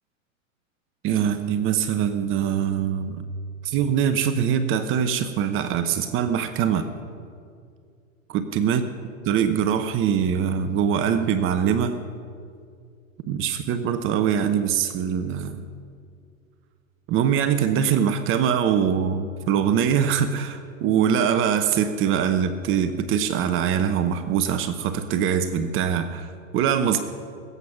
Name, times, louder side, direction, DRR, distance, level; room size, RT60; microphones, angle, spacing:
voice 1, 1.0-3.2 3.6-6.9 8.3-8.8 9.2-12.0 13.3-15.6 17.1-27.0, right 8 dB, 30° right, 9 dB, 0.9 m, -23 dB
21.5 x 8.1 x 6.1 m, 2.3 s
hypercardioid pair, 115°, 41 cm